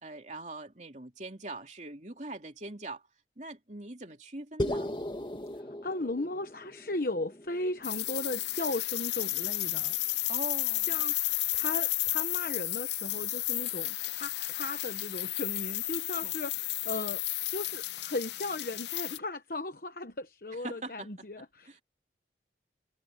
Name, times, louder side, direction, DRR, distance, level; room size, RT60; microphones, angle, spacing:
voice 1, 0.0-3.0 3.4-4.9 10.3-10.9 16.2-16.4 20.6-21.3 21.6-21.8, right 2 dB, 40° right, 3.2 m, -42 dB
sound 1, 4.6-9.0, left 1 dB, 25° left, 2.0 m, -38 dB
voice 2, 5.8-10.0 10.9-11.1 11.5-17.2 17.5-21.8, left 2 dB, 55° left, 1.1 m, -36 dB
sound 2, 7.8-19.2, left 17 dB, 75° left, 0.6 m, -32 dB
head